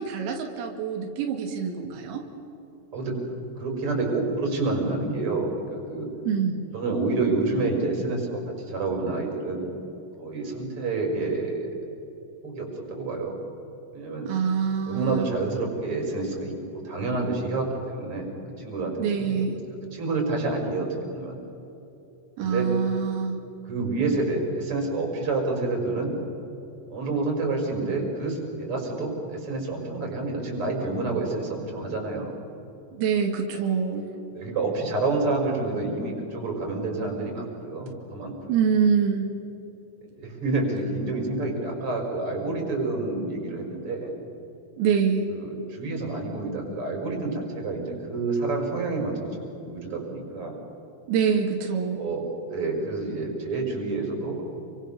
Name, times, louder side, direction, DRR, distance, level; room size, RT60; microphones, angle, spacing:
voice 1, 0.0-2.2 6.3-6.6 14.3-15.3 19.0-19.6 22.4-23.4 32.9-34.1 38.5-39.3 44.8-45.3 51.1-52.1, right 6 dB, 85° right, 2 dB, 4.9 m, -25 dB
voice 2, 3.6-6.1 6.7-9.7 10.2-11.7 12.4-13.4 13.9-14.3 14.8-18.3 18.6-19.4 19.9-21.4 22.4-22.7 23.7-26.1 26.9-32.3 34.3-38.5 40.2-44.1 45.3-49.4 49.6-50.6 52.0-54.5, right 3 dB, 25° right, 1 dB, 5.9 m, -28 dB
29.0 x 25.0 x 7.1 m, 2.9 s
omnidirectional pair, 5.9 m